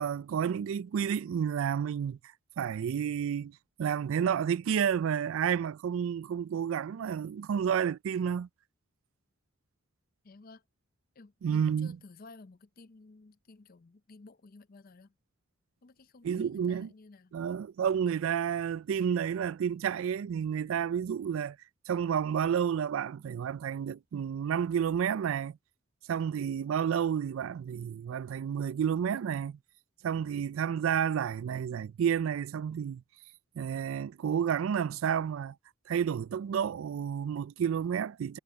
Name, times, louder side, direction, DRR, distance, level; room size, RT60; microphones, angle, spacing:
voice 1, 0.0-2.2 2.6-8.5 11.4-12.0 16.2-16.9 17.3-21.6 21.9-25.6 26.1-29.6 30.0-33.0 33.6-35.5 35.9-38.4, right 8 dB, 70° right, 0.3 m, -30 dB
voice 2, 10.2-10.6 11.2-15.1 15.8-17.3, left 3 dB, 45° left, 0.6 m, -54 dB
head